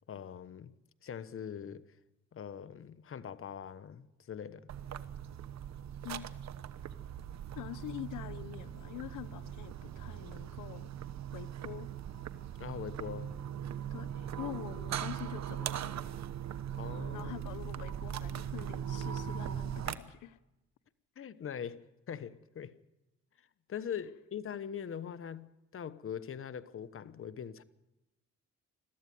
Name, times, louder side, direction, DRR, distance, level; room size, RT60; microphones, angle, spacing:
voice 1, 0.1-0.7 1.0-1.8 2.3-4.7 12.6-13.3 16.7-17.3 19.9-20.0 21.2-22.7 23.7-27.6, left 8 dB, 45° left, 1.1 m, -42 dB
sound 1, 4.7-20.0, right 9 dB, 60° right, 1.1 m, -40 dB
voice 2, 7.5-10.9 11.3-11.9 13.9-16.1 17.1-20.4 21.2-21.3, left 14 dB, 85° left, 0.9 m, -45 dB
22.0 x 14.0 x 9.4 m
cardioid pair, 90°, 30 cm